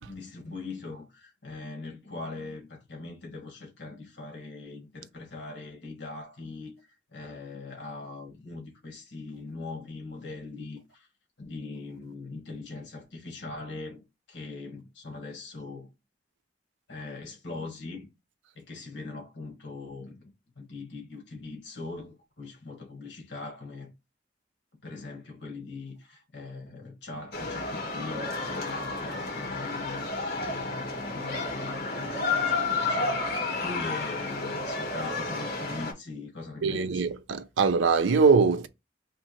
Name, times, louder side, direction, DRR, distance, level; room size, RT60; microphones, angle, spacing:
voice 1, 0.0-11.1 11.4-14.0 14.3-15.9 16.9-18.1 18.5-20.3 20.6-23.9 24.8-37.0, left 3 dB, 75° left, 1.5 m, -41 dB
sound 1, 27.3-35.9, left 3 dB, 55° left, 1.7 m, -31 dB
voice 2, 36.6-38.7, right 4 dB, 85° right, 0.5 m, -22 dB
3.5 x 2.8 x 4.3 m
head